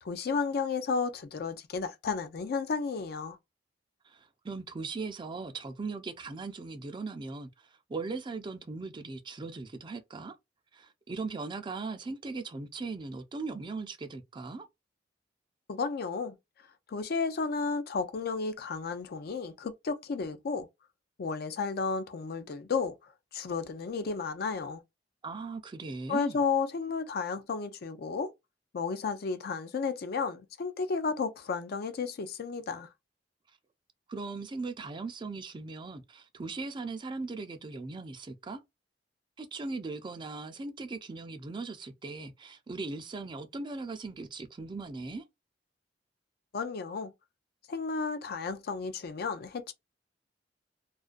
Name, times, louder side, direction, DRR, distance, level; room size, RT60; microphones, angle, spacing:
voice 1, 0.0-3.4 15.7-16.4 16.9-20.7 21.2-24.8 26.1-28.3 28.7-32.9 46.5-47.1 47.7-49.7, left 4 dB, 60° left, 0.4 m, -33 dB
voice 2, 4.0-10.4 10.7-14.7 25.2-26.4 34.1-38.6 39.4-45.2, right 3 dB, 25° right, 0.4 m, -39 dB
2.4 x 2.2 x 2.4 m
head